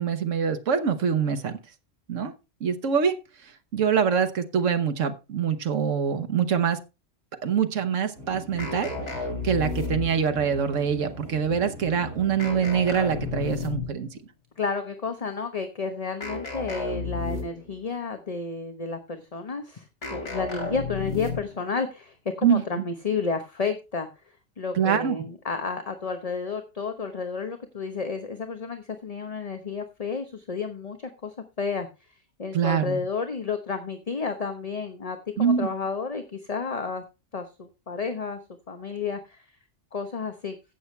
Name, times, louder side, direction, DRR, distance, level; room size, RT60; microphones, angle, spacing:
voice 1, 0.0-1.6 2.1-2.3 2.6-3.1 3.4-6.8 7.4-14.2 22.4-22.6 24.7-25.2 32.5-33.0 35.4-35.7, right 7 dB, 90° right, 7 dB, 1.5 m, -25 dB
sound 1, 8.2-13.5, equal, 70° right, 5.6 m, -41 dB
sound 2, 8.6-10.4 12.4-14.1 16.2-17.7 20.0-21.6, left 4 dB, 70° left, 3.1 m, -32 dB
voice 2, 14.6-24.1 24.6-37.0 37.3-38.4 38.7-39.4 39.9-40.5, left 4 dB, 30° left, 7 dB, 1.0 m, -31 dB
16.0 x 7.1 x 3.3 m, 0.28 s
omnidirectional pair, 1.3 m